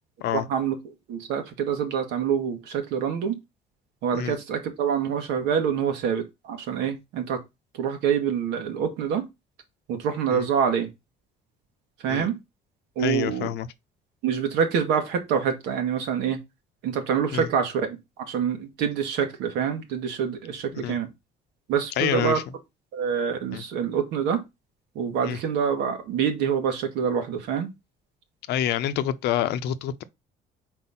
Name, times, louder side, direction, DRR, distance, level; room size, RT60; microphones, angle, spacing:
voice 1, 0.3-0.7 1.1-3.4 4.0-7.4 7.8-9.2 9.9-10.9 12.0-12.4 12.9-13.5 14.2-16.4 16.8-18.0 18.3-21.1 21.7-22.4 22.9-24.4 24.9-27.7, right 7 dB, 90° right, 1.7 m, -26 dB
voice 2, 13.0-13.7 17.3-17.5 20.7-21.0 22.0-22.4 23.5-23.6 25.2-25.4 28.5-30.0, left 11 dB, 75° left, 0.7 m, -27 dB
4.5 x 4.1 x 5.7 m
cardioid pair, 110°, 17 cm